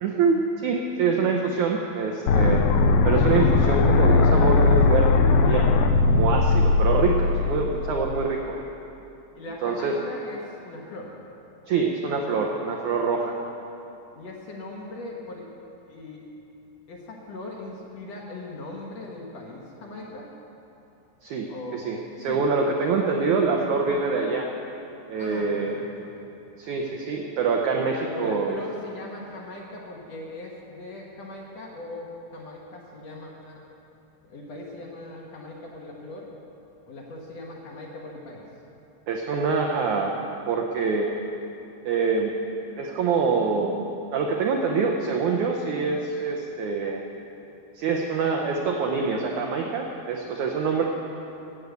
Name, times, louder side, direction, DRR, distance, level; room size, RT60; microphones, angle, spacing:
voice 1, 0.0-2.6 3.0-5.7 6.1-8.5 9.6-9.9 11.7-13.4 21.2-21.5 21.7-24.5 25.1-25.8 26.6-27.9 28.2-28.6 39.1-40.1 40.5-41.1 41.8-42.3 42.8-47.0 47.8-50.8, right 5 dB, 85° right, 1 dB, 1.7 m, -25 dB
sound 1, 2.3-8.2, left 4 dB, 80° left, 2.5 m, -19 dB
voice 2, 9.3-11.2 14.2-15.5 15.9-16.2 16.9-20.3 21.5-21.9 22.2-22.4 25.2-26.1 27.7-33.6 34.2-36.3 36.9-38.5, left 2 dB, 60° left, -2 dB, 1.8 m, -39 dB
14.0 x 8.4 x 8.0 m, 2.8 s
omnidirectional pair, 4.7 m